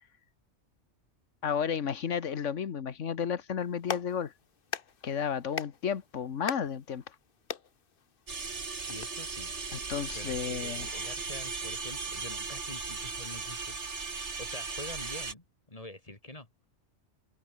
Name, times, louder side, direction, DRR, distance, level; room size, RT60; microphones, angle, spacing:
voice 1, 1.4-4.3 5.0-7.1 9.7-11.1, left 7 dB, 90° left, 1.5 m, -33 dB
Clapping, 3.6-9.1, left 6 dB, 50° left, 1.2 m, -42 dB
sound 1, 8.3-15.3, right 4 dB, 70° right, 2.5 m, -37 dB
voice 2, 8.7-9.6 10.1-13.8 14.4-16.5, left 1 dB, 30° left, 2.9 m, -46 dB
omnidirectional pair, 1.2 m